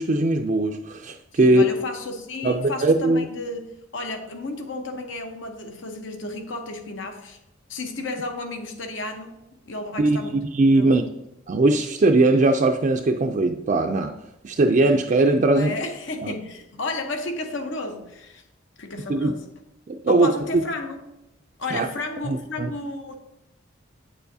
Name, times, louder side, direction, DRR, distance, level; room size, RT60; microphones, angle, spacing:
voice 1, 0.0-1.6 2.4-3.3 10.0-11.1 11.5-14.2 14.4-15.7 16.2-16.3 19.1-19.4 19.9-20.3 21.7-21.9 22.3-22.7, right 2 dB, 40° right, 2 dB, 0.4 m, -20 dB
voice 2, 1.3-7.4 7.7-9.4 9.7-10.4 10.7-11.0 15.6-18.4 18.8-19.4 20.1-21.0 21.6-23.1, left 2 dB, 70° left, 5 dB, 0.9 m, -32 dB
9.0 x 6.9 x 2.7 m, 0.91 s
head